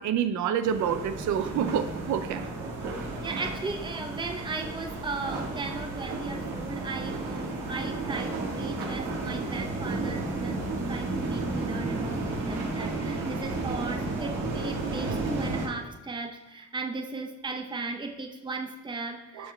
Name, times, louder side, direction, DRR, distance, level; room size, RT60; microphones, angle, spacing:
voice 1, 0.0-2.4 19.4-19.5, right 8 dB, 75° right, 10 dB, 0.5 m, -28 dB
sound 1, 0.6-15.7, right 2 dB, 90° right, 1.5 m, -33 dB
voice 2, 3.2-19.5, right 3 dB, 15° right, 4 dB, 0.7 m, -36 dB
11.5 x 5.7 x 2.2 m, 0.98 s
cardioid pair, 90°, 30 cm